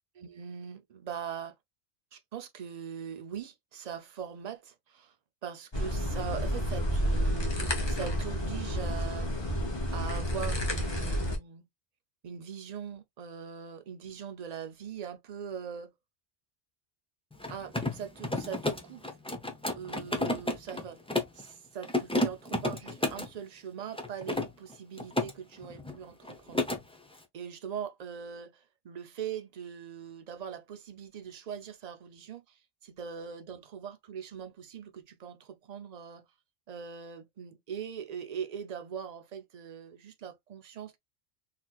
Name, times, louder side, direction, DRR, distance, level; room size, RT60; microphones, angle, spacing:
voice 1, 0.1-1.6 2.1-5.1 5.4-9.4 9.7-11.6 12.2-15.9 17.5-19.0 19.8-21.0 21.3-26.6 27.3-36.2 36.7-41.0, right 8 dB, 45° right, 0.6 m, -41 dB
sound 1, 5.7-11.4, equal, 25° left, 0.8 m, -30 dB
Mechanisms, 17.3-21.4 21.8-23.3 23.9-25.3 25.6-26.0 26.2-26.8, left 1 dB, 10° left, 0.4 m, -32 dB
4.1 x 2.8 x 2.3 m
omnidirectional pair, 1.2 m